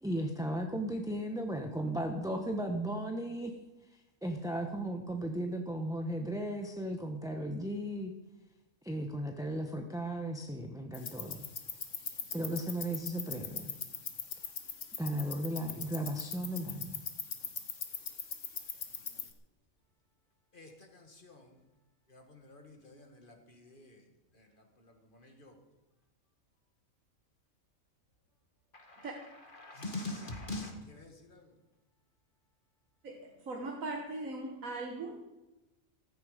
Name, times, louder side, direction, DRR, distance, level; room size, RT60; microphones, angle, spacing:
voice 1, 0.0-3.5 3.9-8.1 8.8-11.4 12.1-13.7 15.0-17.0, right 1 dB, 5° right, 0.9 m, -36 dB
sound 1, 10.9-19.3, left 6 dB, 65° left, 1.6 m, -41 dB
voice 2, 20.5-21.6 22.1-24.0 24.4-24.5 24.8-25.6 28.7-29.1 29.4-31.5, left 2 dB, 40° left, 2.2 m, -45 dB
voice 3, 33.0-35.2, right 2 dB, 80° right, 1.9 m, -39 dB
15.0 x 14.5 x 5.1 m
omnidirectional pair, 1.4 m